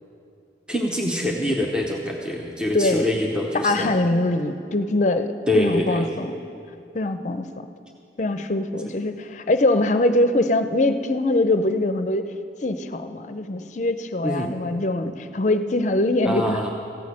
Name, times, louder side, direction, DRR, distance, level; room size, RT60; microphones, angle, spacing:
voice 1, 0.7-3.9 5.5-6.0 8.8-8.9 14.2-14.5 16.2-16.7, left 1 dB, 5° right, -1 dB, 0.8 m, -25 dB
voice 2, 2.7-3.1 3.5-6.3 6.9-7.7 8.2-12.3 12.6-16.7, left 2 dB, 40° left, 9 dB, 0.6 m, -23 dB
15.0 x 6.4 x 8.5 m, 2.6 s
head